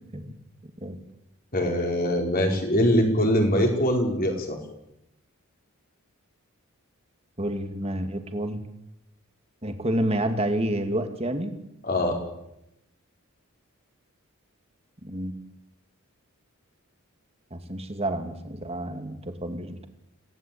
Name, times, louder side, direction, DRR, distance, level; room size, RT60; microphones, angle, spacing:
voice 1, 1.5-4.6 11.9-12.2, equal, 40° left, 2 dB, 4.9 m, -23 dB
voice 2, 7.4-8.7 9.6-11.5 15.0-15.3 17.5-19.9, right 1 dB, 25° right, 7 dB, 2.4 m, -29 dB
27.0 x 17.5 x 8.8 m, 0.86 s
head